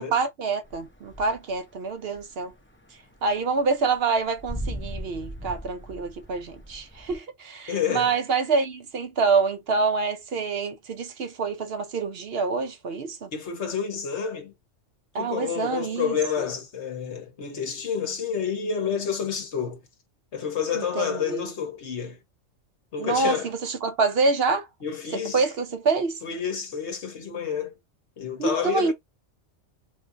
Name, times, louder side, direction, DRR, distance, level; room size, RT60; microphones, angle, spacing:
voice 1, 0.0-2.5 3.2-13.3 15.1-16.1 20.7-21.5 23.0-24.7 25.3-26.2 28.4-28.9, right 4 dB, 60° right, 0.8 m, -26 dB
sound 1, 0.6-1.7 1.9-7.2, equal, 10° left, 0.7 m, -38 dB
voice 2, 7.7-8.2 13.3-14.5 15.2-19.8 20.3-22.2 22.9-23.5 24.8-25.4 26.2-27.7 28.2-28.9, left 7 dB, 65° left, 1.2 m, -29 dB
3.3 x 3.1 x 2.5 m
omnidirectional pair, 1.3 m